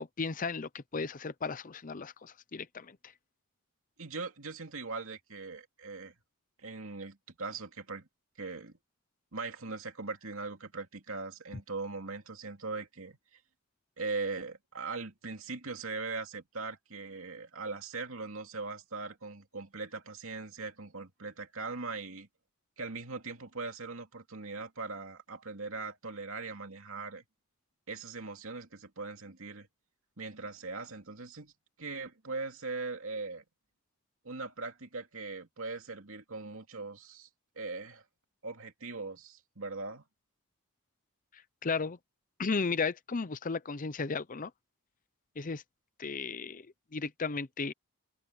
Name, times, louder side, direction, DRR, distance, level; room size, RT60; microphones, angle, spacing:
voice 1, 0.0-3.1 41.3-42.0 42.4-44.5 45.4-45.6 46.0-46.7 46.9-47.7, left 4 dB, 35° left, 0.6 m, -35 dB
voice 2, 4.0-6.1 6.6-8.1 8.4-8.8 9.3-13.4 14.0-22.3 22.8-27.2 27.9-29.7 30.2-31.5 31.8-33.4 34.2-37.3 37.6-38.0 38.4-40.0, right 3 dB, 65° right, 2.8 m, -40 dB
head